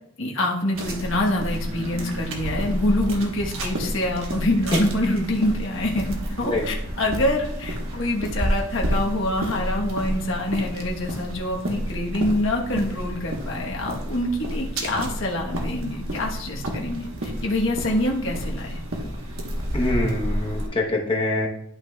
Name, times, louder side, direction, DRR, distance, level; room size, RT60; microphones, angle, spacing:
voice 1, 0.2-18.8, left 1 dB, 60° left, -1 dB, 1.2 m, -26 dB
sound 1, 0.7-20.7, equal, 75° right, 1.2 m, -30 dB
voice 2, 19.7-21.5, left 2 dB, 25° left, -1 dB, 1.0 m, -24 dB
11.0 x 5.7 x 2.3 m, 0.75 s
head